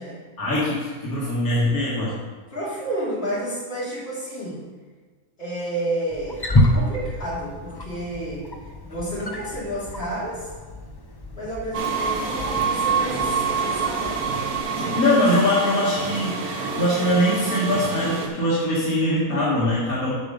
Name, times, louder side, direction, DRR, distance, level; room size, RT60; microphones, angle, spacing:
voice 1, 0.4-2.2 14.8-20.1, left 1 dB, 75° left, -7 dB, 2.2 m, -22 dB
voice 2, 2.5-4.6 5.4-10.5 11.3-14.2, right 1 dB, 45° left, -8 dB, 3.3 m, -31 dB
Wild animals, 6.1-14.6, left 1 dB, 25° left, 0.5 m, -28 dB
sound 1, 11.7-18.3, right 5 dB, 85° right, 1.5 m, -26 dB
9.1 x 5.0 x 5.1 m, 1.4 s
omnidirectional pair, 1.5 m